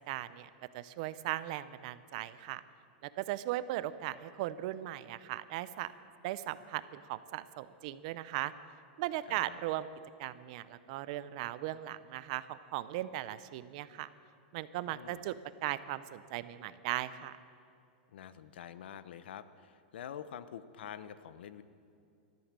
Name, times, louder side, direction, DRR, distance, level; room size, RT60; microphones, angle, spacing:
voice 1, 0.1-2.6 3.0-5.9 6.2-8.5 9.0-9.9 10.2-14.1 14.5-15.4 15.6-17.4, right 15 dB, 40° right, 15 dB, 0.5 m, -38 dB
voice 2, 9.3-9.6 14.9-15.2 18.1-21.6, left 9 dB, 80° left, 14 dB, 0.8 m, -47 dB
13.5 x 13.5 x 7.5 m, 2.5 s
supercardioid pair, 170°, 6 cm